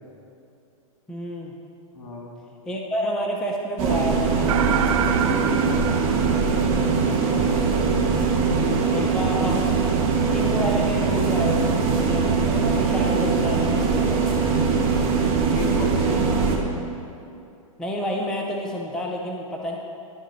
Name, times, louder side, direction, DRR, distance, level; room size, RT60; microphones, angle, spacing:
voice 1, 1.1-1.5 2.7-4.7 7.2-7.6 8.9-9.9 10.3-14.2 16.0-16.4 17.8-19.8, equal, 5° left, -1 dB, 0.4 m, -29 dB
voice 2, 1.9-2.3 5.8-6.2 8.9-9.3 14.5-15.0 15.5-16.6, left 2 dB, 70° left, 0 dB, 1.7 m, -34 dB
sound 1, 3.8-16.6, right 5 dB, 35° right, 1.0 m, -21 dB
sound 2, 4.5-7.1, right 9 dB, 65° right, 0.4 m, -28 dB
10.5 x 3.7 x 4.0 m, 2.6 s
hypercardioid pair, 140°, 18 cm